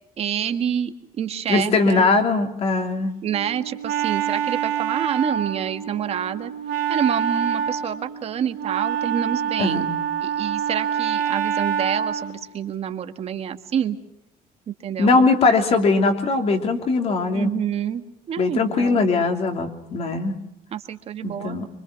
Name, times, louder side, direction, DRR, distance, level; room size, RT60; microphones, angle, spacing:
voice 1, 0.2-2.1 3.2-6.5 6.9-9.9 10.2-14.0 14.7-15.2 17.3-19.0 20.7-21.6, right 9 dB, 40° right, 8 dB, 1.7 m, -27 dB
voice 2, 1.5-3.1 9.6-9.9 15.0-17.5 18.4-20.4 21.2-21.7, left 3 dB, 40° left, 5 dB, 3.2 m, -20 dB
Wind instrument woodwind instrument, 3.3-12.4, right 8 dB, 70° right, 2.3 m, -26 dB
25.5 x 25.0 x 6.0 m, 0.82 s
cardioid pair, 155°, 15 cm